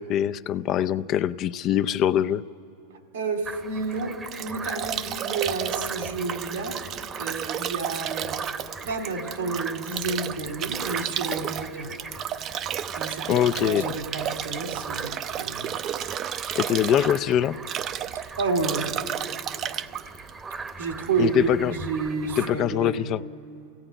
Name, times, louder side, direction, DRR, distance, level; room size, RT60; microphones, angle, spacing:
voice 1, 0.0-2.4 13.3-13.9 16.5-17.6 21.2-21.7 22.4-23.2, left 10 dB, 40° left, 13 dB, 0.5 m, -23 dB
voice 2, 3.1-4.1 4.4-6.8 7.2-8.4 8.8-11.9 12.9-15.8 18.4-18.9 20.8-23.1, right 4 dB, 85° right, 4 dB, 2.9 m, -30 dB
sound 1, 3.4-22.5, right 4 dB, 20° right, 1.0 m, -40 dB
Bathtub (filling or washing) / Drip / Trickle dribble, 3.8-21.1, right 10 dB, 40° right, 0.6 m, -32 dB
28.0 x 17.5 x 9.0 m, 2.8 s
hypercardioid pair, 120°, 0 cm